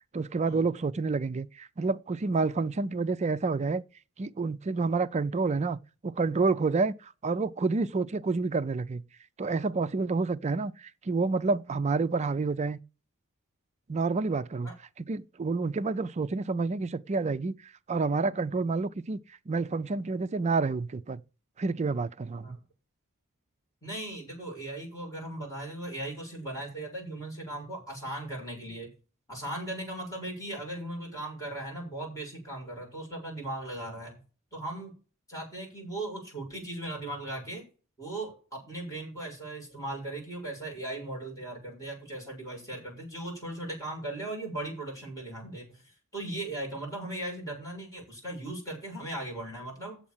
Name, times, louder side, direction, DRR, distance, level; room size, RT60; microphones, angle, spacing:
voice 1, 0.1-3.8 4.2-5.8 6.0-9.0 9.4-12.8 13.9-14.7 15.0-19.2 19.5-21.2 21.6-22.6, right 4 dB, 30° right, 0.4 m, -29 dB
voice 2, 23.8-28.9 29.3-34.1 34.5-34.9 35.3-37.6 38.0-45.8 46.1-50.0, right 1 dB, 15° left, 7.1 m, -38 dB
8.6 x 7.4 x 7.2 m
head